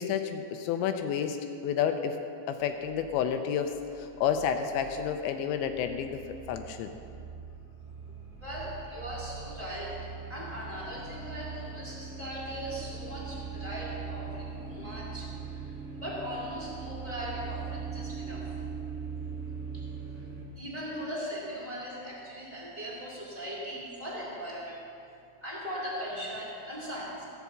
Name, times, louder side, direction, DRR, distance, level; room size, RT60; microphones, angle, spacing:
voice 1, 0.0-1.4 1.6-2.2 2.5-6.2 6.5-6.9, left 8 dB, 80° left, 7 dB, 2.9 m, -30 dB
sound 1, 2.6-20.4, right 5 dB, 45° right, 0.8 m, -41 dB
voice 2, 8.4-10.0 10.3-15.6 15.9-18.5 19.7-19.8 20.5-24.8 25.4-27.2, equal, 20° left, -5 dB, 1.1 m, -39 dB
15.5 x 7.2 x 7.3 m, 2.5 s
omnidirectional pair, 5.3 m